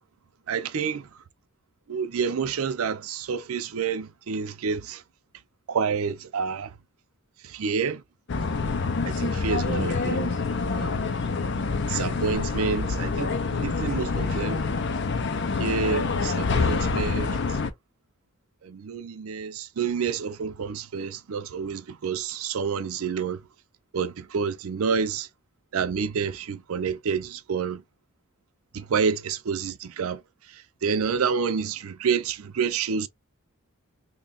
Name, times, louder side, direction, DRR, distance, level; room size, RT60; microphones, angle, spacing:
voice 1, 0.5-1.1 1.9-5.0 5.7-6.7 7.4-8.0 9.1-11.1 11.9-14.6 15.6-17.6 18.6-23.4 23.9-25.3 25.7-27.8 28.7-30.2 30.5-33.1, right 6 dB, 80° right, 0.5 m, -29 dB
sound 1, 8.3-17.7, left 4 dB, 55° left, 0.5 m, -26 dB
3.1 x 2.3 x 3.8 m
head